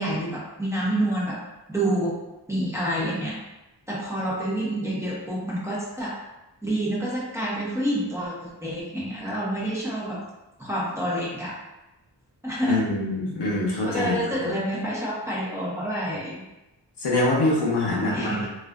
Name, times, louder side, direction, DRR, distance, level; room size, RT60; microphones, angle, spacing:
voice 1, 0.0-1.4 1.7-2.2 2.5-3.4 3.9-6.1 6.6-10.2 10.6-11.5 12.4-12.9 13.8-16.4 17.8-18.5, right 1 dB, 5° right, -8 dB, 0.7 m, -28 dB
voice 2, 12.7-14.5 17.0-18.5, left 2 dB, 65° left, -4 dB, 0.8 m, -24 dB
2.4 x 2.4 x 2.3 m, 0.99 s
wide cardioid pair, 85°, 43 cm